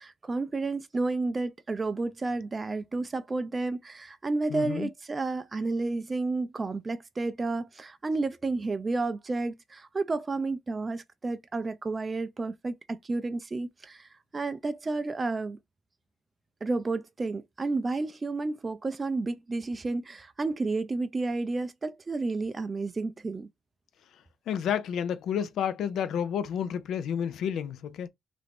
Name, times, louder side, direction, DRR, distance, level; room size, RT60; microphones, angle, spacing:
voice 1, 0.0-15.6 16.6-23.5, right 3 dB, 30° right, 0.3 m, -31 dB
voice 2, 4.5-4.9 24.5-28.1, left 8 dB, 75° left, 0.4 m, -30 dB
2.9 x 2.5 x 3.3 m
cardioid pair, 90°, 0 cm